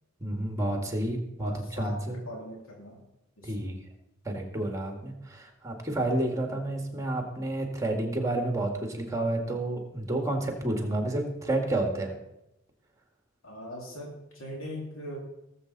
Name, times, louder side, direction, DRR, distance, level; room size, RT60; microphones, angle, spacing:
voice 1, 0.2-2.2 3.4-3.8 4.3-12.1, right 1 dB, 15° right, 3 dB, 1.9 m, -30 dB
voice 2, 1.4-3.0 3.4-3.5 13.4-15.2, equal, 85° left, -2 dB, 2.7 m, -40 dB
18.5 x 7.6 x 4.1 m, 0.87 s
head